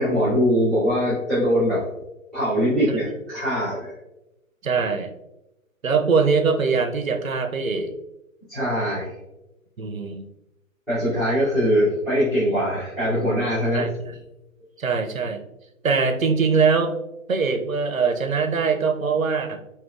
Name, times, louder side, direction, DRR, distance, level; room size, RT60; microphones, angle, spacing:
voice 1, 0.0-1.8 2.3-3.9 8.5-9.1 10.9-13.9, equal, ahead, -18 dB, 1.2 m, -22 dB
voice 2, 4.6-5.1 5.8-7.9 9.8-10.3 13.7-13.9 14.8-15.4 15.8-16.9 17.3-19.6, right 5 dB, 80° right, 7 dB, 0.7 m, -22 dB
5.8 x 2.9 x 2.3 m, 0.93 s
figure-of-eight pair, 135°, 41 cm